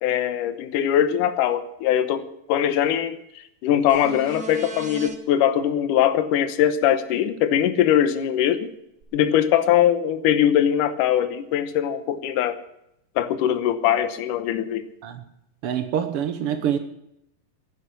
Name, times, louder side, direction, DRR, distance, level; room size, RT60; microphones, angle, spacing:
voice 1, 0.0-3.2 3.6-8.7 9.1-12.6 13.2-14.8, left 10 dB, 75° left, 2.4 m, -21 dB
sound 1, 3.9-5.1 9.0-9.1, right 3 dB, 45° right, 1.4 m, -37 dB
voice 2, 15.6-16.8, right 9 dB, 90° right, 1.2 m, -25 dB
11.5 x 10.0 x 9.8 m
omnidirectional pair, 4.0 m